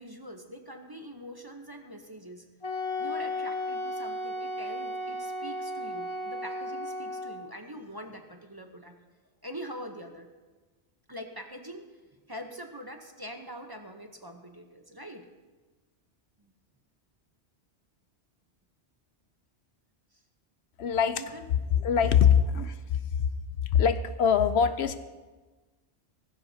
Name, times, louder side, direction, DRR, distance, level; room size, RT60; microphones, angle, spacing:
voice 1, 0.0-2.5 3.0-9.0 9.4-10.3 11.1-11.8 12.3-15.2 16.4-16.5 21.1-21.4 22.0-22.1, equal, 20° right, 4 dB, 0.9 m, -43 dB
Wind instrument woodwind instrument, 2.6-7.5, left 1 dB, 30° left, 0.8 m, -34 dB
voice 2, 20.8-21.2 21.7-23.0 23.6-25.0, left 7 dB, 75° left, 11 dB, 0.9 m, -23 dB
17.5 x 15.0 x 2.8 m, 1.3 s
omnidirectional pair, 1.1 m